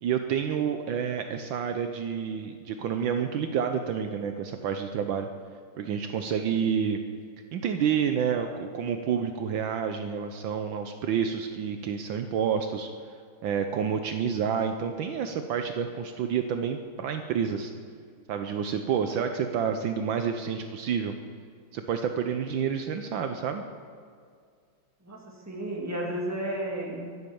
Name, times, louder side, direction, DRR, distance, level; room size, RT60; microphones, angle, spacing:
voice 1, 0.0-5.3 5.8-7.0 7.5-12.9 13.4-17.7 18.3-21.1 21.7-23.6, right 7 dB, 70° right, 6 dB, 1.5 m, -29 dB
voice 2, 25.5-27.3, right 1 dB, 10° right, -2 dB, 2.2 m, -32 dB
22.5 x 8.4 x 7.0 m, 2.1 s
omnidirectional pair, 2.3 m